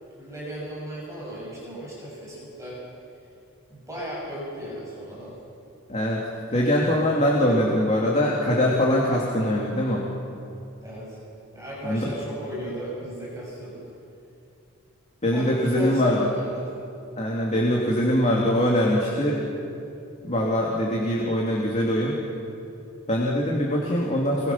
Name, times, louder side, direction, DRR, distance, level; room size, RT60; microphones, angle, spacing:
voice 1, 0.2-2.8 3.7-5.3 10.8-11.2 11.5-13.8 15.3-16.6, equal, 15° right, -6 dB, 6.5 m, -36 dB
voice 2, 5.9-6.2 6.5-10.1 11.8-12.0 15.2-16.2 17.2-19.4 20.2-22.2 23.1-24.5, left 1 dB, 30° left, -3 dB, 2.9 m, -22 dB
27.0 x 23.5 x 5.9 m, 2.6 s
head